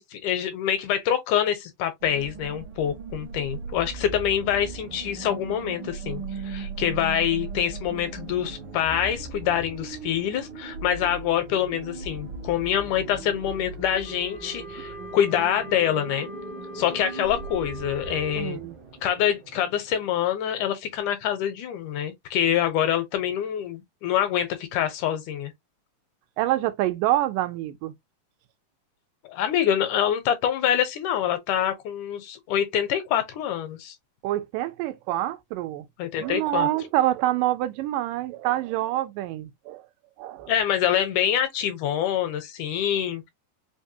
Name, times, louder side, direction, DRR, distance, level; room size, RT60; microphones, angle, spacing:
voice 1, 0.0-16.3 16.8-18.6 19.0-25.5 29.2-34.0 36.0-36.7 40.5-43.3, left 10 dB, 75° left, 2.2 m, -26 dB
sound 1, 2.0-20.3, right 4 dB, 60° right, 1.3 m, -38 dB
Wind instrument woodwind instrument, 14.0-18.5, right 2 dB, 30° left, 0.5 m, -41 dB
voice 2, 18.4-18.8 26.4-27.9 34.2-35.9 36.2-39.9 40.2-40.5, right 14 dB, 85° right, 2.3 m, -26 dB
5.2 x 2.2 x 2.7 m
omnidirectional pair, 3.8 m